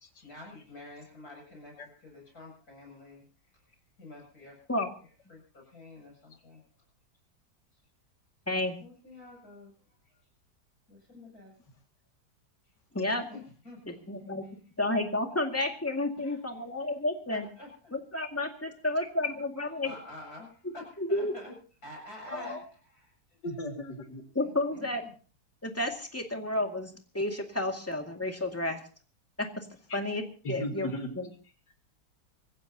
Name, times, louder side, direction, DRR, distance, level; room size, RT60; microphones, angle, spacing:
voice 1, 0.2-4.8 5.3-6.6 7.7-7.8 8.5-10.3 10.9-11.5 12.6-12.7 13.3-14.1 14.4-14.5 16.2-16.4 16.8-17.0 17.3-17.9 18.7-18.8 19.6-21.5 21.8-23.5 24.4-25.1, left 2 dB, 60° left, 0 dB, 7.8 m, -49 dB
voice 2, 8.5-8.8 12.9-13.3 13.9-14.4 14.8-17.4 17.9-19.9 21.1-21.3 24.3-25.0 25.6-28.8 29.4-29.7 29.9-30.2 30.5-30.9 31.2-31.3, left 2 dB, 10° left, 3 dB, 2.1 m, -31 dB
voice 3, 22.2-22.6 23.4-24.2 30.4-31.1, left 1 dB, 85° left, 4 dB, 2.9 m, -36 dB
25.5 x 15.5 x 2.9 m, 0.39 s
omnidirectional pair, 1.8 m